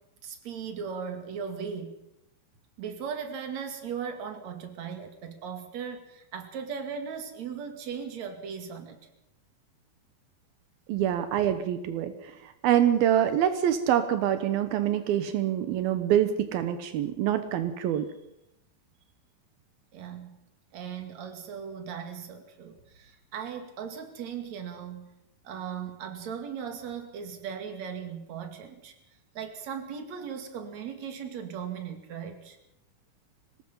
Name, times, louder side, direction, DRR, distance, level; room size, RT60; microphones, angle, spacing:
voice 1, 0.2-1.9 2.8-9.0 19.9-20.4 20.7-25.1 25.4-28.9 29.3-32.6, right 7 dB, 50° right, 5 dB, 3.4 m, -38 dB
voice 2, 10.9-12.1 12.6-18.1, right 10 dB, 85° right, 9 dB, 2.9 m, -25 dB
24.0 x 19.5 x 5.6 m, 0.84 s
omnidirectional pair, 4.2 m